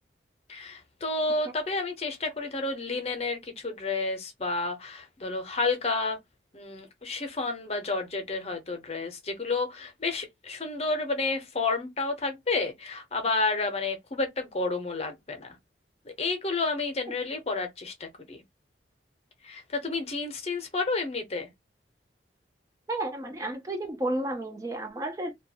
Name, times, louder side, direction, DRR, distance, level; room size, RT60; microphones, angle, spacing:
voice 1, 0.5-6.2 6.5-15.6 16.2-18.4 19.4-21.5, left 3 dB, 35° left, 0.7 m, -30 dB
voice 2, 22.9-25.3, right 1 dB, 20° right, 0.4 m, -32 dB
2.4 x 2.2 x 2.7 m
head